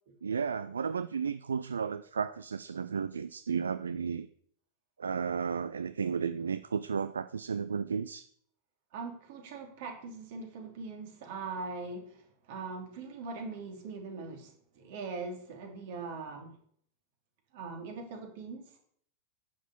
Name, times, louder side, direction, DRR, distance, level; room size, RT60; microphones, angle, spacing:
voice 1, 0.2-4.3 5.0-8.3, right 6 dB, 70° right, 14 dB, 0.4 m, -33 dB
voice 2, 8.9-16.5 17.5-18.8, right 4 dB, 50° right, 3 dB, 2.9 m, -41 dB
10.0 x 6.4 x 6.9 m, 0.63 s
figure-of-eight pair, 90°, 0 cm